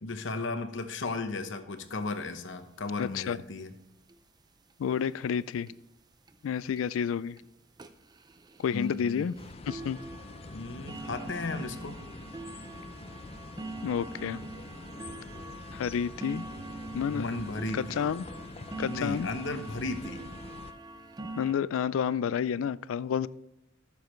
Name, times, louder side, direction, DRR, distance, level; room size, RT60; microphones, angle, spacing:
voice 1, 0.0-3.7 8.7-9.2 10.5-12.0 17.1-18.1 18.8-20.2, left 3 dB, 65° left, 0.9 m, -35 dB
sound 1, 1.8-1.9 2.2-2.3 2.5-2.6 3.0-3.3 4.1-4.2 4.7-4.8 5.2-5.3 5.7-5.8 6.3-6.4 6.8-6.9 7.4-7.5 7.8-21.5, right 2 dB, 20° right, 0.5 m, -44 dB
voice 2, 3.0-3.4 4.8-5.7 6.4-7.4 8.6-9.3 9.6-10.0 13.8-14.4 15.7-16.5 16.9-17.3 17.7-18.2 18.8-19.3 21.4-23.3, left 7 dB, 85° left, 0.3 m, -30 dB
sound 2, 9.3-20.7, left 2 dB, 30° left, 0.5 m, -45 dB
14.5 x 7.1 x 3.2 m
head